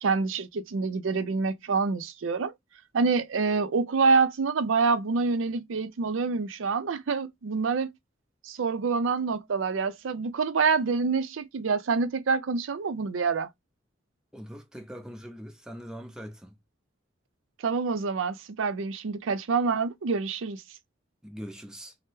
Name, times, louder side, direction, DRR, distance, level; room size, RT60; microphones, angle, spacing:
voice 1, 0.0-2.5 2.9-7.9 8.4-13.5 17.6-20.6, right 4 dB, 80° right, 0.5 m, -26 dB
voice 2, 14.3-16.6 21.2-21.9, equal, 5° right, 0.5 m, -42 dB
3.2 x 2.0 x 3.0 m
head